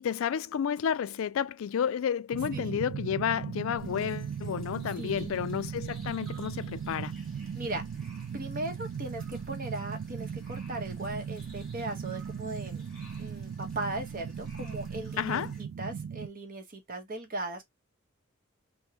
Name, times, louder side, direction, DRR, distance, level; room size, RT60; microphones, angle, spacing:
voice 1, 0.0-7.1 15.2-15.5, left 8 dB, 70° left, 0.3 m, -31 dB
sound 1, 2.3-16.3, right 7 dB, 70° right, 0.3 m, -38 dB
sound 2, 3.8-15.6, equal, 5° left, 1.1 m, -54 dB
voice 2, 5.0-5.3 7.5-7.8 8.3-12.8 13.2-17.6, right 2 dB, 40° right, 1.0 m, -38 dB
3.5 x 2.2 x 2.7 m
head